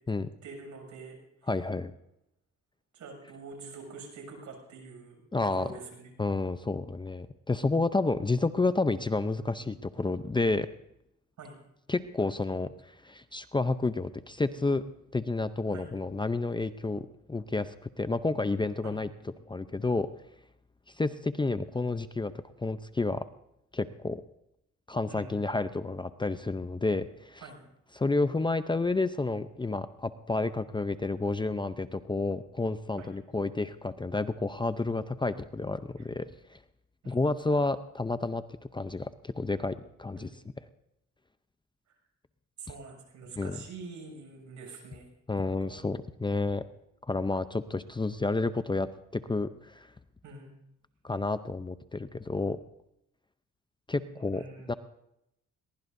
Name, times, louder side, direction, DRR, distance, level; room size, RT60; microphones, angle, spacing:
voice 1, 0.4-1.5 2.9-5.2 5.6-6.1 11.4-11.5 15.7-15.9 25.1-25.4 27.4-27.6 33.0-33.1 36.0-36.1 37.0-37.3 40.2-40.3 42.6-45.1 45.7-45.8 50.2-50.5 54.1-54.8, right 4 dB, 70° right, 2 dB, 7.1 m, -46 dB
voice 2, 1.5-1.9 5.3-5.7 6.2-10.7 11.9-14.8 15.1-19.1 19.5-20.1 20.9-22.3 22.6-23.3 23.7-24.2 24.9-27.4 27.9-36.6 37.1-38.4 38.7-40.3 43.4-43.6 45.3-46.6 47.1-49.9 51.0-52.6 53.9-54.7, left 3 dB, 15° left, 11 dB, 0.6 m, -30 dB
22.0 x 20.0 x 2.7 m, 0.81 s
cardioid pair, 90°, 30 cm